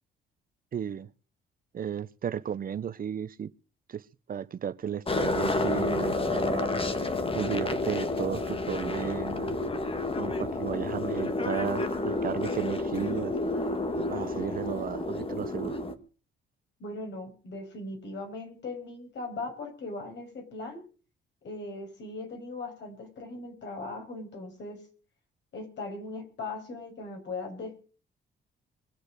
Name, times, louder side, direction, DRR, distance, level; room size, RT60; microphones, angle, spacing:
voice 1, 0.7-1.1 1.7-3.5 3.9-6.8 7.3-9.6 10.1-13.4 13.9-15.8, right 8 dB, 45° right, 0.7 m, -34 dB
sound 1, 5.1-15.9, left 2 dB, 30° left, 1.8 m, -30 dB
voice 2, 16.8-20.8 21.4-24.8 25.5-27.8, left 3 dB, 65° left, 6.3 m, -39 dB
23.0 x 7.9 x 6.6 m
cardioid pair, 90°, 20 cm